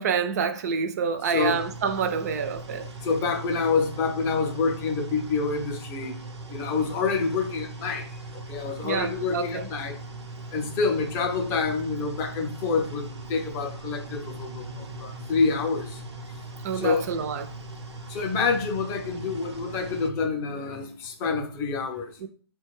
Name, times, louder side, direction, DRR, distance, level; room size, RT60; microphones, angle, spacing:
voice 1, 0.0-2.9 8.8-9.7 16.6-17.5 22.2-22.3, right 6 dB, 40° right, 0.5 m, -27 dB
sound 1, 1.3-20.1, right 2 dB, 85° right, 0.9 m, -40 dB
voice 2, 3.0-6.2 6.5-8.1 8.5-10.0 10.5-16.0 16.8-17.1 18.1-22.3, left 4 dB, 20° left, 0.6 m, -27 dB
4.1 x 2.3 x 4.6 m
hypercardioid pair, 155°, 14 cm